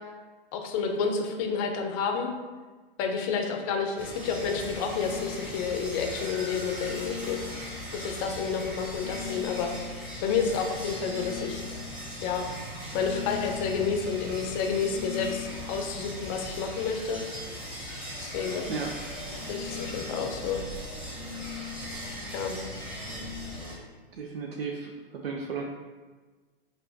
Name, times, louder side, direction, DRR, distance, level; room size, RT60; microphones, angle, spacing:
voice 1, 0.5-2.3 3.0-7.4 7.9-9.8 10.2-11.6 12.2-12.5 12.9-17.2 18.2-18.7 19.5-20.6 22.3-22.6, left 6 dB, 35° left, 4 dB, 0.6 m, -30 dB
sound 1, 4.0-23.8, left 1 dB, 5° right, 0.9 m, -38 dB
voice 2, 24.1-25.6, right 5 dB, 80° right, 1 dB, 0.6 m, -34 dB
5.4 x 2.6 x 2.7 m, 1.3 s
hypercardioid pair, 120°, 30 cm